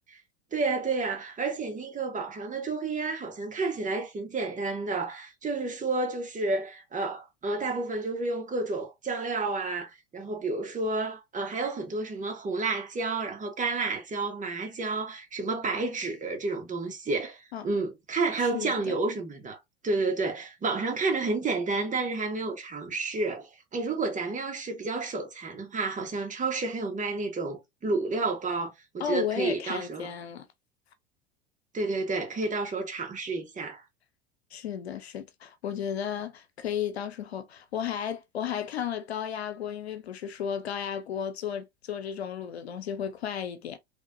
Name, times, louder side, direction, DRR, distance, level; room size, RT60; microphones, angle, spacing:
voice 1, 0.5-19.6 19.8-30.1 31.7-33.8, right 3 dB, 25° right, 1.6 m, -30 dB
voice 2, 18.4-18.9 29.0-30.5 34.5-43.8, left 9 dB, 85° left, 0.7 m, -34 dB
3.6 x 3.2 x 2.6 m
hypercardioid pair, 80°, 31 cm